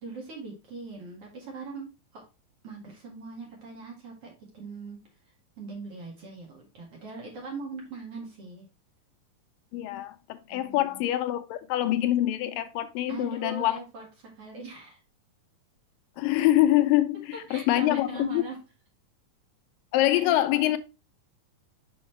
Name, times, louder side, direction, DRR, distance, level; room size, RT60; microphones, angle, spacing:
voice 1, 0.0-1.9 2.1-2.2 2.6-5.0 5.6-8.6 10.5-11.0 13.1-15.0 17.3-18.6, right 4 dB, 45° right, 2.4 m, -41 dB
voice 2, 9.7-13.8 16.2-18.4 19.9-20.8, left 14 dB, 85° left, 2.2 m, -25 dB
6.3 x 5.5 x 3.2 m
omnidirectional pair, 4.0 m